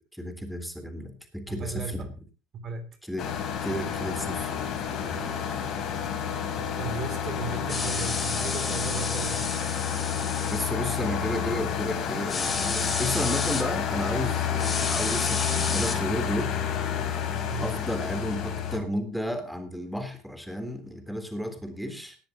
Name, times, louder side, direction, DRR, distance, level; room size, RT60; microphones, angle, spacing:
voice 1, 0.1-2.1 3.0-3.3 3.6-5.7 10.5-16.5 17.6-22.2, equal, ahead, 6 dB, 3.5 m, -33 dB
voice 2, 1.5-2.1 2.5-2.9 6.8-9.6 17.4-17.8, right 4 dB, 40° right, 7 dB, 3.0 m, -36 dB
sound 1, 3.2-18.8, left 8 dB, 45° left, 4.2 m, -30 dB
sound 2, 7.7-10.7 12.3-13.6 14.6-15.9, left 4 dB, 20° left, 3.6 m, -31 dB
19.0 x 13.0 x 3.0 m, 0.32 s
figure-of-eight pair, 65°, 0 cm